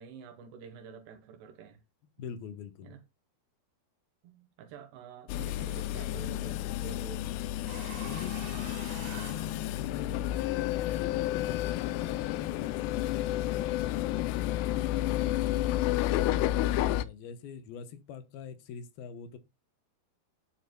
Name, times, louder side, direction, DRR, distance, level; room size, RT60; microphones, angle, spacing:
voice 1, 0.0-1.8 2.2-2.3 2.8-3.0 4.2-7.4 8.6-8.7 11.9-12.2 13.2-13.5 16.0-16.4, right 6 dB, 90° right, 3.3 m, -49 dB
voice 2, 2.0-3.0 8.0-10.3 10.5-13.1 13.6-15.4 16.2-19.4, left 7 dB, 75° left, 2.6 m, -45 dB
sound 1, 5.3-17.0, left 14 dB, 90° left, 2.7 m, -31 dB
sound 2, 7.7-10.2, right 6 dB, 70° right, 4.5 m, -46 dB
11.0 x 9.3 x 2.2 m
omnidirectional pair, 4.7 m